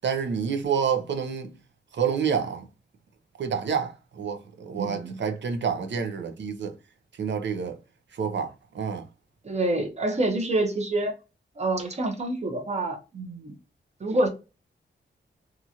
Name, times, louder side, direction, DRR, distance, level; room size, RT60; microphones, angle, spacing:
voice 1, 0.0-1.6 1.9-2.7 3.4-6.8 7.1-7.8 8.1-9.1, right 6 dB, 70° right, 0.6 m, -28 dB
voice 2, 4.8-5.1 9.4-11.1 11.6-13.5 14.0-14.3, right 2 dB, 35° right, 0.8 m, -27 dB
2.9 x 2.4 x 2.7 m
wide cardioid pair, 155°, 20 cm